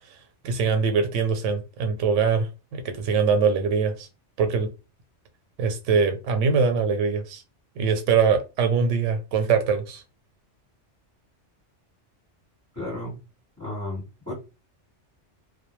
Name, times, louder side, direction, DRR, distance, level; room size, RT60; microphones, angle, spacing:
voice 1, 0.4-4.1 4.4-4.7 5.6-7.4 7.8-10.0, right 5 dB, 90° right, 0.9 m, -23 dB
voice 2, 12.7-13.2 13.6-14.3, left 1 dB, 15° left, 1.1 m, -33 dB
2.2 x 2.1 x 3.0 m
omnidirectional pair, 1.2 m